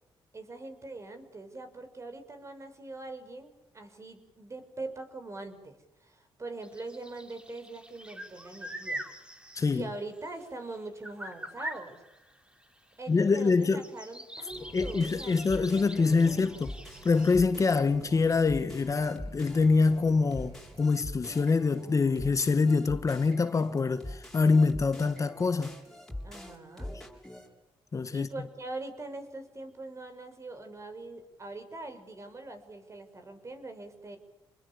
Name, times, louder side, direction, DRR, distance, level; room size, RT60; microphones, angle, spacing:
voice 1, 0.3-9.0 9.7-12.0 13.0-16.7 26.2-27.0 28.1-34.2, right 2 dB, 30° right, 6.3 m, -43 dB
sound 1, 6.6-10.8 11.0-17.4, right 1 dB, 10° right, 3.5 m, -44 dB
voice 2, 9.5-9.9 13.1-13.8 14.7-16.7 17.0-25.7 27.9-28.3, left 4 dB, 35° left, 1.5 m, -25 dB
sound 2, 14.5-27.5, left 1 dB, 5° left, 7.7 m, -44 dB
sound 3, 14.5-20.9, right 4 dB, 75° right, 6.8 m, -52 dB
28.0 x 21.5 x 8.6 m
cardioid pair, 85°, 9 cm